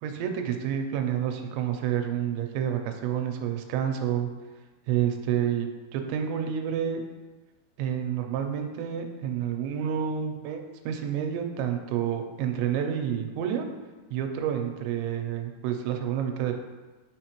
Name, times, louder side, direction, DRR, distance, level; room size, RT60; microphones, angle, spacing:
voice 1, 0.0-4.3 4.9-7.0 7.8-13.7 14.1-16.5, right 9 dB, 90° right, 5 dB, 2.9 m, -29 dB
6.4 x 5.2 x 3.0 m, 1.3 s
omnidirectional pair, 5.0 m